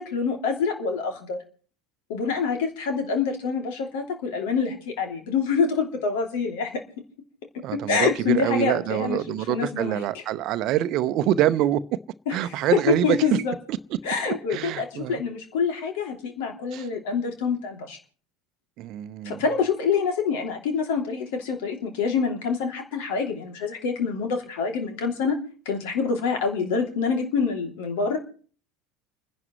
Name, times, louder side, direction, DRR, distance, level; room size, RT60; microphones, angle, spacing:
voice 1, 0.0-1.4 2.1-6.7 7.7-10.0 12.3-13.5 14.0-18.0 19.2-25.4 25.6-28.2, left 5 dB, 70° left, 2.9 m, -26 dB
voice 2, 7.6-11.8 12.3-13.2 13.7-13.8 14.5-15.2 16.7-16.9 18.8-19.4, right 13 dB, 55° right, 0.7 m, -25 dB
30.0 x 10.5 x 3.2 m
hypercardioid pair, 70°, 0 cm